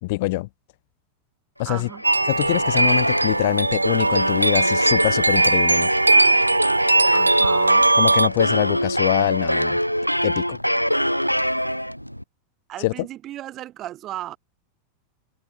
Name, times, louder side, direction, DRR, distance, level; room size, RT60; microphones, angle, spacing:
voice 1, 0.0-0.5 1.6-1.9 2.3-5.9 8.0-9.8 10.2-10.6 12.8-12.9, left 22 dB, 50° left, 3.4 m, -24 dB
voice 2, 1.6-2.0 7.1-8.0 12.7-14.4, right 13 dB, 35° right, 4.1 m, -35 dB
sound 1, 1.8-12.2, equal, 90° left, 2.9 m, -24 dB
sound 2, 2.0-8.3, right 2 dB, 80° right, 2.4 m, -19 dB
figure-of-eight pair, 90°, 0 cm